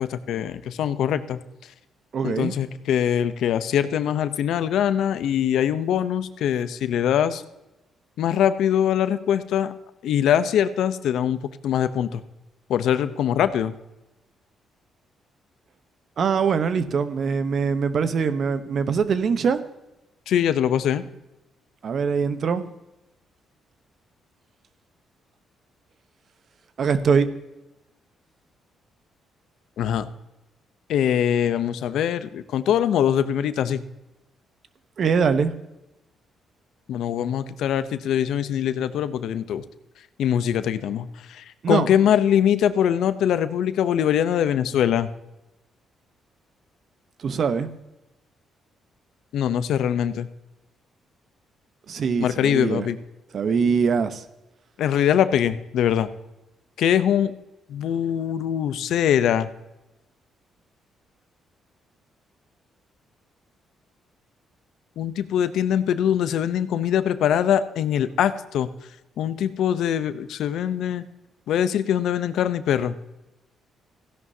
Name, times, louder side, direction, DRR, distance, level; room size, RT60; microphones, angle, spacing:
voice 1, 0.0-1.4 2.2-7.4 8.2-9.7 10.0-12.2 12.7-13.7 20.3-21.0 29.8-30.1 30.9-33.8 36.9-39.6 40.2-45.1 49.3-50.3 52.2-53.0 54.8-56.1 56.8-57.3 57.7-59.5 65.0-68.7 69.2-71.0 71.5-73.0, left 9 dB, 75° left, 13 dB, 0.7 m, -23 dB
voice 2, 2.1-2.5 16.2-19.6 21.8-22.6 26.8-27.3 35.0-35.5 41.6-41.9 47.2-47.7 51.9-52.9 53.3-54.2, right 6 dB, 55° right, 11 dB, 0.9 m, -22 dB
15.5 x 11.0 x 2.8 m, 0.96 s
cardioid pair, 90°, 0 cm